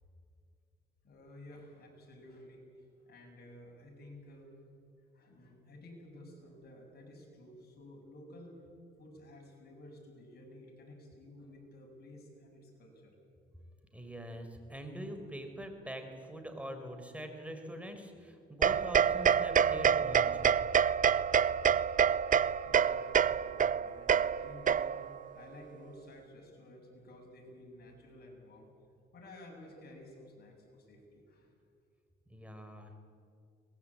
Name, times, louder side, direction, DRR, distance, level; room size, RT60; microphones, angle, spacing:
voice 1, 1.0-2.6 3.1-4.5 5.1-8.6 9.0-13.1 21.3-21.4 22.7-28.7 29.1-31.5, left 1 dB, 55° left, 1 dB, 7.4 m, -53 dB
voice 2, 13.9-20.7 32.3-33.0, equal, 5° right, 5 dB, 4.4 m, -44 dB
sound 1, 18.6-25.2, right 8 dB, 40° right, 0.6 m, -27 dB
23.5 x 20.5 x 8.7 m, 2.4 s
cardioid pair, 90°, 20 cm